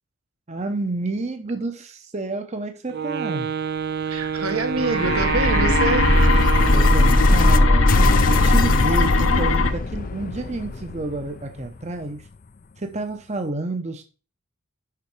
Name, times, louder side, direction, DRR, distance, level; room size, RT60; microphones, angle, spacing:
voice 1, 0.5-3.5 6.7-7.9 8.3-12.2 12.8-14.0, right 2 dB, 30° right, 6 dB, 0.8 m, -29 dB
Wind instrument woodwind instrument, 2.9-7.8, right 7 dB, 45° right, 0.4 m, -27 dB
voice 2, 4.1-6.1, right 2 dB, 80° right, 5 dB, 1.5 m, -25 dB
sound 1, 4.2-7.6 7.9-12.6, left 4 dB, 40° left, 0.5 m, -29 dB
sound 2, 4.7-9.7, left 2 dB, 70° left, 1.1 m, -17 dB
6.8 x 5.7 x 4.8 m, 0.34 s
head